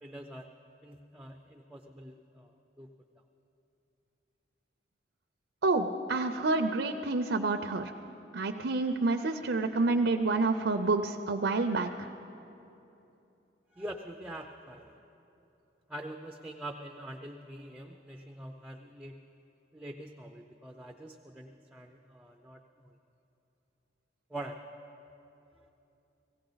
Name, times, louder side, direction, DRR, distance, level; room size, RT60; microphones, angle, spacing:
voice 1, 0.0-0.5 0.8-2.5 2.8-2.9 13.8-15.0 15.9-19.2 19.7-22.6 24.3-24.6, right 1 dB, 5° right, 3 dB, 0.4 m, -44 dB
voice 2, 5.6-7.9 8.3-12.1, right 3 dB, 80° right, 5 dB, 0.5 m, -28 dB
17.0 x 16.5 x 3.9 m, 2.8 s
head